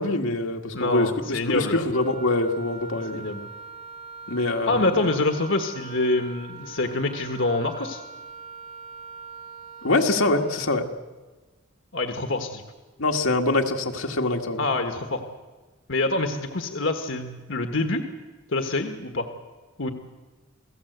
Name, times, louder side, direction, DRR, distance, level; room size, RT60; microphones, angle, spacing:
voice 1, 0.0-3.2 4.3-4.8 9.8-10.9 13.0-14.7, left 2 dB, 80° left, 2 dB, 1.9 m, -24 dB
voice 2, 0.7-1.8 3.1-3.5 4.7-8.0 11.9-12.6 14.6-15.2 15.9-18.1 18.5-19.3 19.8-19.9, left 2 dB, 60° left, 5 dB, 1.5 m, -26 dB
Wind instrument woodwind instrument, 1.9-10.8, right 5 dB, 30° right, 1.4 m, -42 dB
28.5 x 17.5 x 8.1 m, 1.3 s
head